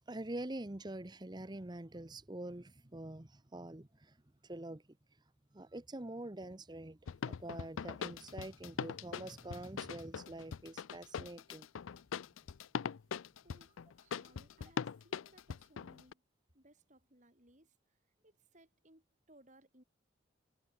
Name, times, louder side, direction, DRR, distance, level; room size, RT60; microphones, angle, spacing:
voice 1, 0.1-4.2 4.4-5.0 5.5-11.7, right 1 dB, 20° right, 0.9 m, -45 dB
sound 1, 7.1-16.1, left 6 dB, 85° left, 0.4 m, -41 dB
voice 2, 13.4-16.2 16.5-19.8, right 1 dB, 40° right, 7.8 m, -65 dB
head